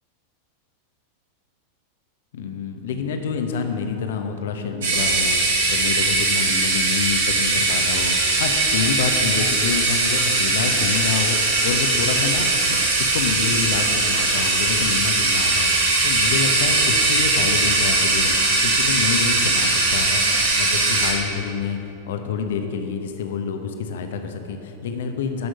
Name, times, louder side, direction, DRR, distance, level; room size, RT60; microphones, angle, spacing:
voice 1, 2.3-21.8 22.1-25.5, left 6 dB, 60° left, 6 dB, 1.0 m, -28 dB
sound 1, 4.8-21.1, right 2 dB, 60° right, 2.0 m, -20 dB
12.5 x 6.3 x 5.5 m, 2.9 s
figure-of-eight pair, 90°, 0 cm